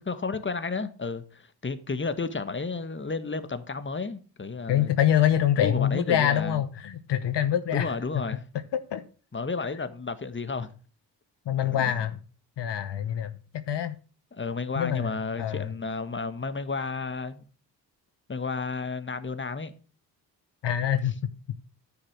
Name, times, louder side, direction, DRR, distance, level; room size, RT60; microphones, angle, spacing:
voice 1, 0.0-4.9 5.6-6.6 7.7-8.4 9.3-10.7 11.6-12.0 14.3-17.5 18.3-19.7, left 4 dB, 25° left, 1.5 m, -32 dB
voice 2, 4.7-7.9 8.7-9.0 11.5-12.2 12.6-13.3 13.7-14.0 14.8-15.7 20.6-21.2, left 10 dB, 65° left, 1.0 m, -25 dB
9.8 x 7.2 x 6.2 m
supercardioid pair, 45°, 45 cm